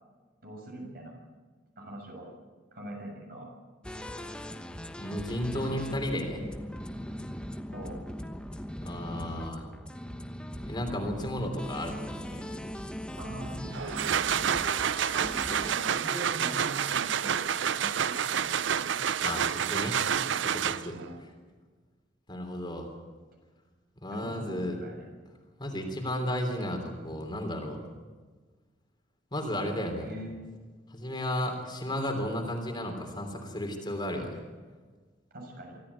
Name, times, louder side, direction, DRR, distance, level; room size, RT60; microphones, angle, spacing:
voice 1, 0.4-1.2 1.8-2.3 2.7-3.5 7.7-8.0 13.2-13.9 15.7-19.4 20.2-20.4 20.9-21.2 24.1-25.0 30.0-30.5 35.3-35.8, right 1 dB, 55° right, 0 dB, 7.2 m, -42 dB
sound 1, 3.8-15.7, equal, 5° left, 1.1 m, -39 dB
voice 2, 5.0-6.4 8.8-9.7 10.7-12.4 19.2-20.0 20.4-21.0 22.3-22.9 24.0-24.8 25.6-27.8 29.3-30.1 30.9-34.4, left 1 dB, 25° left, 3 dB, 3.3 m, -33 dB
sound 2, 13.7-21.1, right 8 dB, 80° right, 0.5 m, -29 dB
24.5 x 14.0 x 8.3 m, 1.4 s
head